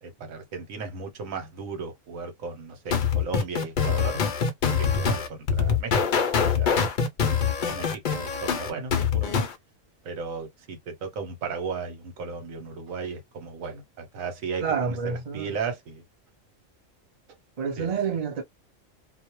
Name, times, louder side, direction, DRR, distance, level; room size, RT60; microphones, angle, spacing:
voice 1, 0.0-4.2 4.8-6.2 6.6-6.7 7.7-9.4 10.0-16.0 17.8-18.2, right 5 dB, 80° right, 1.1 m, -35 dB
sound 1, 2.9-9.5, left 6 dB, 65° left, 0.4 m, -24 dB
voice 2, 14.6-15.6 17.6-18.4, right 6 dB, 40° right, 0.6 m, -28 dB
2.2 x 2.1 x 2.9 m
omnidirectional pair, 1.4 m